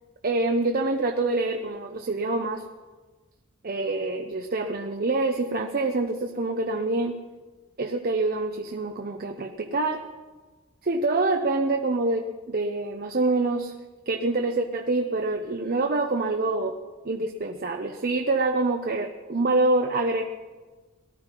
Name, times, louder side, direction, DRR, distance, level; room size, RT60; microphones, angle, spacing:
voice 1, 0.2-2.6 3.6-7.2 7.8-10.0 10.8-13.7 14.1-16.8 17.0-20.2, right 2 dB, 45° right, 5 dB, 0.7 m, -26 dB
18.5 x 12.5 x 4.5 m, 1.3 s
head